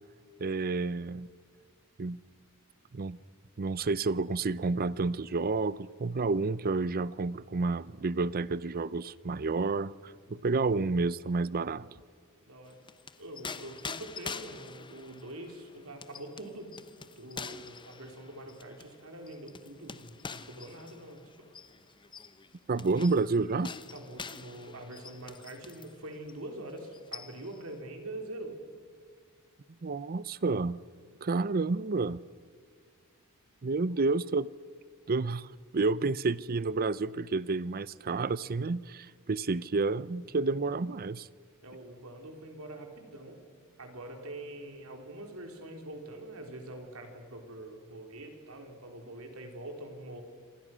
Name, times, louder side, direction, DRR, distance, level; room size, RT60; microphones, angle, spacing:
voice 1, 0.4-1.3 2.0-2.2 2.9-3.2 3.6-11.9 22.7-23.7 29.8-30.8 31.2-32.2 33.6-34.5 35.1-41.3, right 3 dB, 45° right, 0.6 m, -30 dB
voice 2, 12.5-12.8 13.2-16.7 17.2-21.2 23.9-28.6 41.6-43.4 43.8-50.2, right 1 dB, 70° right, 4.3 m, -44 dB
sound 1, 12.7-26.0 26.3-26.5 26.8-27.6, left 5 dB, 20° left, 0.8 m, -45 dB
27.5 x 26.0 x 6.3 m
head